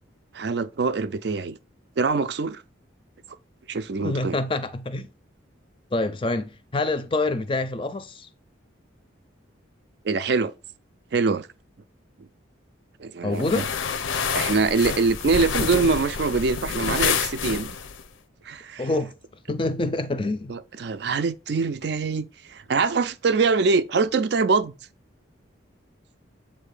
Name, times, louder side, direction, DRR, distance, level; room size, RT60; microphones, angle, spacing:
voice 1, 0.3-1.6 2.0-2.6 3.7-4.4 10.0-10.5 11.1-11.5 12.2-12.3 13.0-13.6 14.3-17.8 18.4-18.9 20.5-24.7, right 4 dB, 55° right, 0.4 m, -24 dB
voice 2, 4.0-5.1 5.9-8.3 13.2-13.7 18.8-19.1 19.5-20.5, left 2 dB, 25° left, 0.5 m, -26 dB
sound 1, 13.4-18.0, left 6 dB, 80° left, 0.6 m, -28 dB
7.3 x 2.7 x 4.9 m
head